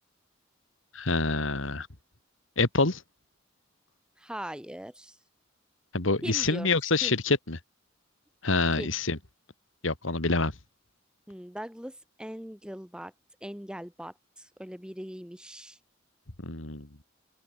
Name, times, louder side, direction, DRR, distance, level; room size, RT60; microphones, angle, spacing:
voice 1, 0.9-1.9 2.6-3.0 5.9-7.6 8.4-9.2 9.8-10.5 16.4-16.9, left 3 dB, 80° left, 2.3 m, -26 dB
voice 2, 4.2-5.2 6.2-6.7 7.0-7.2 8.8-8.9 11.3-13.1 13.4-15.8, equal, 5° right, 2.5 m, -40 dB
open air
head